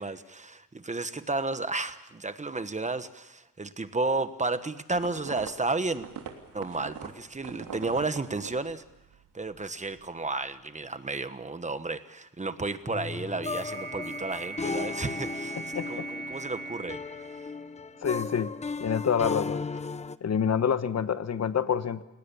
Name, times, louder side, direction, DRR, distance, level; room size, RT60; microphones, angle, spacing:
voice 1, 0.0-6.1 6.5-8.8 9.3-17.0, right 3 dB, 20° right, 11 dB, 1.2 m, -32 dB
sound 1, 4.9-9.3 9.5-10.1, right 7 dB, 75° right, 3.3 m, -42 dB
sound 2, 12.9-20.2, left 4 dB, 20° left, 0.8 m, -35 dB
sound 3, 13.6-18.1, right 4 dB, 60° right, 6.7 m, -40 dB
voice 2, 15.7-16.1 18.0-18.5 18.8-19.7 20.2-22.0, left 7 dB, 50° left, 12 dB, 1.1 m, -27 dB
29.5 x 18.0 x 7.0 m, 0.95 s
cardioid pair, 120°, 34 cm